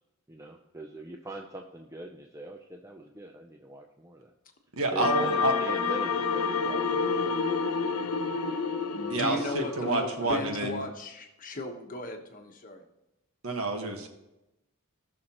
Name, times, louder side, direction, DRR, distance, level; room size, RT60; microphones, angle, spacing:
voice 1, 0.3-4.3 4.9-7.4 8.0-8.6, right 1 dB, 15° right, 2 dB, 0.5 m, -42 dB
voice 2, 4.8-5.5 9.1-10.8 13.4-14.1, right 2 dB, 75° right, 4 dB, 1.5 m, -29 dB
sound 1, 5.0-10.4, left 5 dB, 90° left, 0.7 m, -29 dB
voice 3, 8.9-12.8, left 1 dB, 40° left, 4 dB, 1.2 m, -36 dB
18.0 x 6.4 x 3.0 m, 0.95 s
head